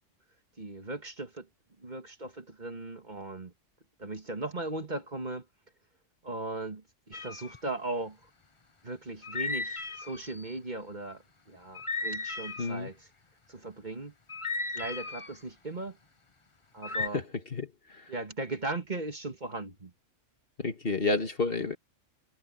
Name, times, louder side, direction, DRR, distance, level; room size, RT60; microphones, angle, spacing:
voice 1, 0.6-1.5 1.8-3.5 4.0-5.5 6.2-8.2 8.8-13.0 13.5-14.1 14.7-16.0 16.7-17.2 18.1-19.9, right 2 dB, 35° right, 2.0 m, -38 dB
sound 1, 7.1-7.6 9.2-10.6 11.8-12.8 14.3-15.4 16.8-17.1, left 3 dB, 25° left, 1.0 m, -35 dB
voice 2, 12.6-12.9 16.9-18.1 20.6-21.8, left 3 dB, 50° left, 2.0 m, -31 dB
omnidirectional pair, 1.3 m